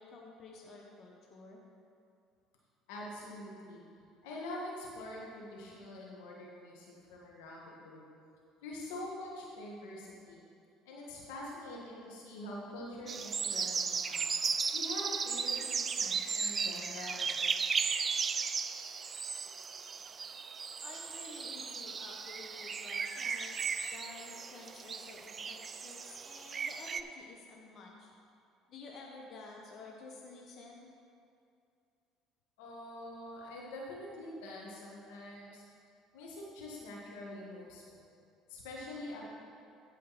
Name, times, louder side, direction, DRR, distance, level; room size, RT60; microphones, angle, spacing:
voice 1, 0.0-1.6 20.8-23.6 23.9-28.1 28.7-30.9, left 3 dB, 55° left, -1 dB, 1.2 m, -51 dB
voice 2, 2.9-3.9 4.2-8.1 8.6-10.4 10.9-14.3 14.7-17.7 32.6-35.6 36.1-38.0 38.5-39.3, left 1 dB, 85° left, -3 dB, 1.8 m, -45 dB
sound 1, 13.1-27.0, right 5 dB, 35° right, 0.4 m, -36 dB
15.0 x 5.1 x 4.2 m, 2.5 s
supercardioid pair, 80°, 0 cm